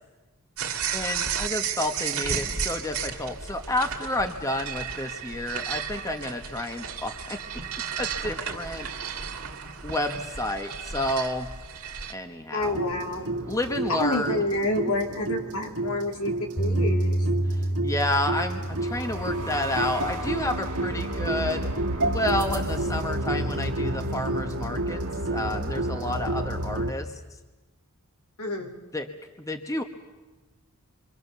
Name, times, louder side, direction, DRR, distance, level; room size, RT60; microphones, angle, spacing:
sound 1, 0.6-12.1, right 7 dB, 70° right, 2.3 m, -33 dB
voice 1, 0.9-7.4 8.0-8.9 9.8-11.5 12.1-12.8 13.5-14.4 17.5-21.7 22.0-25.0 25.3-27.1 28.9-29.1 29.4-29.8, left 1 dB, 15° left, 6 dB, 1.3 m, -30 dB
voice 2, 12.5-13.3 13.9-17.2 28.4-28.7, left 2 dB, 75° left, 2 dB, 3.1 m, -28 dB
sound 2, 12.6-26.9, right 1 dB, 85° right, 2.0 m, -30 dB
Bass guitar, 16.6-21.0 21.6-22.8, right 1 dB, 50° left, 3.7 m, -30 dB
27.5 x 25.0 x 6.9 m, 1.1 s
head